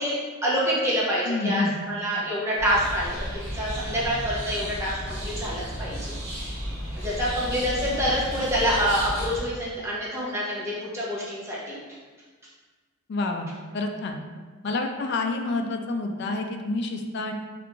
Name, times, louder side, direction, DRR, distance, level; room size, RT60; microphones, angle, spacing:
voice 1, 0.0-6.1 7.0-11.8, equal, 15° right, -6 dB, 0.6 m, -27 dB
voice 2, 1.3-1.8 13.1-13.5 13.7-14.2 14.6-17.3, left 2 dB, 50° left, 4 dB, 0.3 m, -28 dB
sound 1, 2.6-9.4, equal, 55° right, 0.9 m, -33 dB
2.8 x 2.4 x 3.5 m, 1.4 s
head